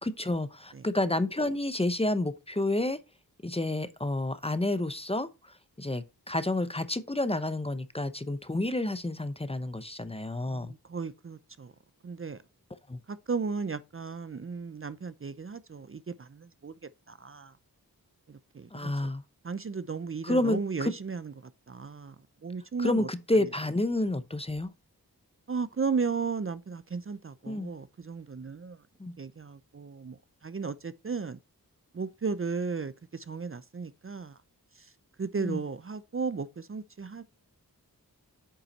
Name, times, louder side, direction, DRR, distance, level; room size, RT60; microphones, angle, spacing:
voice 1, 0.0-3.0 3.4-5.3 5.8-10.7 12.9-13.0 18.7-19.2 20.2-20.9 22.8-24.7 27.5-27.7 29.0-29.1 35.4-35.6, left 1 dB, 15° left, 0.8 m, -29 dB
voice 2, 10.5-11.7 12.0-12.4 13.1-16.7 17.1-17.6 18.3-19.1 19.4-22.2 22.4-23.1 23.4-23.5 25.5-28.8 29.2-31.4 31.9-34.4 34.8-34.9 35.2-37.2, right 5 dB, 35° right, 0.6 m, -35 dB
8.7 x 5.4 x 4.2 m
wide cardioid pair, 65°, 36 cm